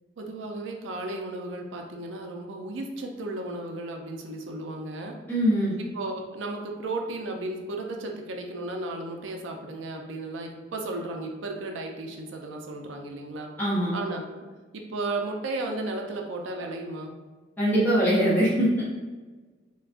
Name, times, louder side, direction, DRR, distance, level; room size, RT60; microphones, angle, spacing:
voice 1, 0.2-5.2 5.8-13.5 13.9-14.2 14.7-17.2, right 2 dB, 80° right, 2 dB, 0.4 m, -34 dB
voice 2, 5.3-5.7 13.6-13.9 17.6-18.8, equal, 10° left, -8 dB, 0.5 m, -22 dB
3.4 x 2.2 x 2.4 m, 1.3 s
head